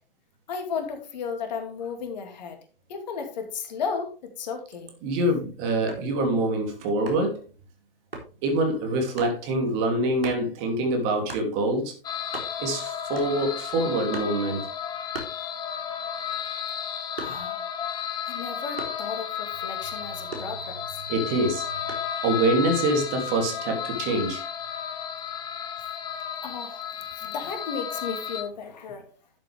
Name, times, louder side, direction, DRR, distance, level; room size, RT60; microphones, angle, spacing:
voice 1, 0.5-2.6 2.9-4.9 17.2-17.7 18.2-20.8 26.4-26.8 27.1-29.1, left 5 dB, 45° left, 2.7 m, -34 dB
voice 2, 5.0-7.4 8.4-11.9 12.6-14.7 21.1-21.7 22.2-24.4, right 2 dB, 30° right, 3.0 m, -25 dB
sound 1, 5.9-6.2 7.1-7.4 8.1-8.3 9.2-9.4 10.2-10.5 11.3-11.5 12.0-12.1 12.2-12.8 13.2-13.6 14.1-14.4 15.1-15.9 16.3-17.6 18.8-19.1 20.3-21.0 21.9-22.2, right 2 dB, 85° right, 4.0 m, -38 dB
sound 2, 12.0-28.4, left 8 dB, 15° left, 1.1 m, -33 dB
12.5 x 7.5 x 3.5 m
figure-of-eight pair, 130°, 29 cm